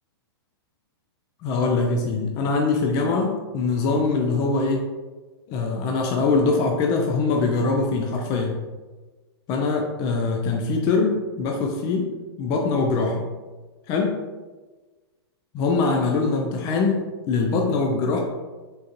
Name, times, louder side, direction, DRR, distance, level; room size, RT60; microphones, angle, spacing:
voice 1, 1.4-4.9 5.5-8.6 9.5-12.1 12.4-13.2 13.9-14.2 15.5-18.2, left 3 dB, 30° left, 1 dB, 0.3 m, -23 dB
3.8 x 2.4 x 2.6 m, 1.3 s
hypercardioid pair, 140°, 14 cm